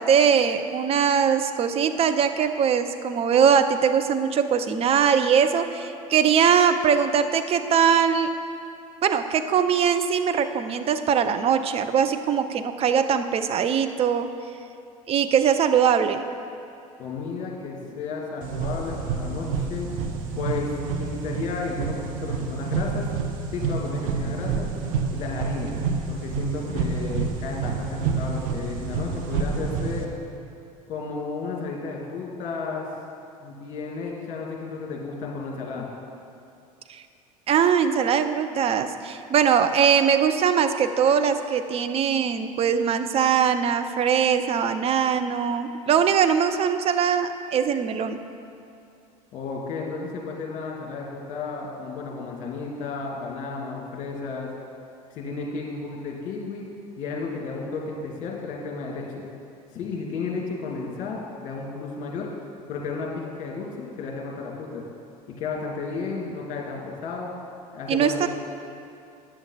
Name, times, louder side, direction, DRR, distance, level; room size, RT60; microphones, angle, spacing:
voice 1, 0.0-8.4 9.0-14.3 15.1-16.3 36.9-37.0 37.5-48.2 67.9-68.3, right 7 dB, 30° right, 9 dB, 0.6 m, -21 dB
voice 2, 17.0-19.9 20.4-23.1 23.5-24.7 25.1-25.8 26.1-30.1 30.9-32.9 33.4-35.9 49.3-54.5 55.1-56.7 57.0-59.3 59.7-62.3 62.7-64.8 65.4-67.3 67.7-68.3, left 4 dB, 40° left, -1 dB, 2.2 m, -33 dB
sound 1, 18.4-30.0, right 5 dB, 60° right, 1.0 m, -28 dB
9.4 x 7.1 x 5.6 m, 2.5 s
figure-of-eight pair, 75°, 19 cm